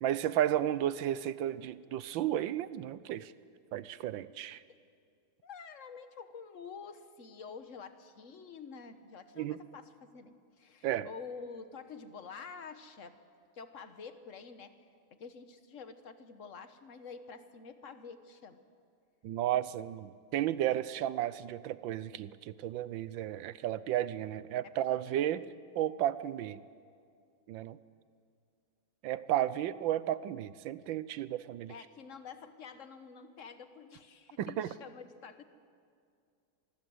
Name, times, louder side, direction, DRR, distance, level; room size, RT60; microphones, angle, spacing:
voice 1, 0.0-3.3 3.7-4.6 9.4-9.6 10.8-11.1 19.2-25.4 25.7-26.6 27.5-27.8 29.0-31.7 34.4-34.7, right 12 dB, 70° right, 16 dB, 1.4 m, -33 dB
voice 2, 5.4-13.2 13.5-18.6 24.6-25.0 31.7-35.4, left 5 dB, 45° left, 10 dB, 1.4 m, -48 dB
26.0 x 20.5 x 7.9 m, 2.3 s
omnidirectional pair, 2.3 m